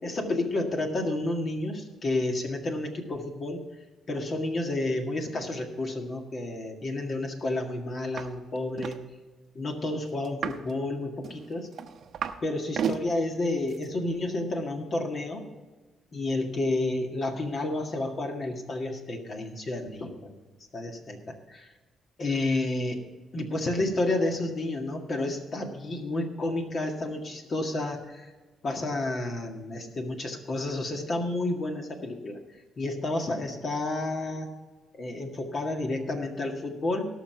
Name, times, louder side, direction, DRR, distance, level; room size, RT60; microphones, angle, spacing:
voice 1, 0.0-3.6 4.1-9.0 9.6-11.7 12.4-15.4 16.1-20.4 20.7-21.7 22.2-23.0 23.3-28.3 28.6-32.4 32.8-34.5 35.0-37.1, left 2 dB, 45° left, 3 dB, 1.9 m, -30 dB
sound 1, 8.2-8.3 8.5-9.0 10.2-10.7 11.2-12.4 12.7-13.0 13.7-13.8, right 8 dB, 60° right, 0.8 m, -32 dB
17.5 x 6.2 x 5.8 m, 1.3 s
cardioid pair, 90°, 0 cm